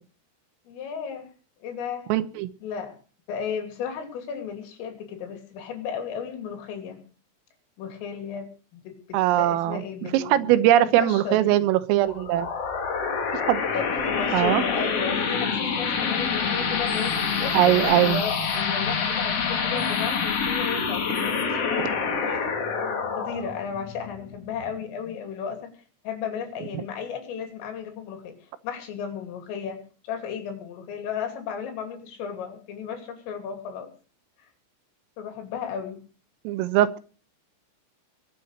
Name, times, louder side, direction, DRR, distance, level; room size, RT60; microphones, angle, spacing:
voice 1, 0.7-1.3 1.6-2.1 2.6-3.0 3.3-7.0 7.8-11.6 13.7-22.0 22.2-22.5 23.2-25.7 26.1-28.3 28.6-33.9 35.2-36.0, left 7 dB, 80° left, 6 dB, 5.4 m, -34 dB
voice 2, 2.1-2.5 9.1-9.8 10.1-12.5 13.5-13.7 14.3-14.6 17.5-18.2 36.5-37.0, right 13 dB, 85° right, 13 dB, 3.7 m, -21 dB
Pencilmation's Profile Photo (Black Background), 12.0-25.2, left 5 dB, 50° left, 1.8 m, -27 dB
22.0 x 7.7 x 6.6 m, 0.39 s
omnidirectional pair, 5.8 m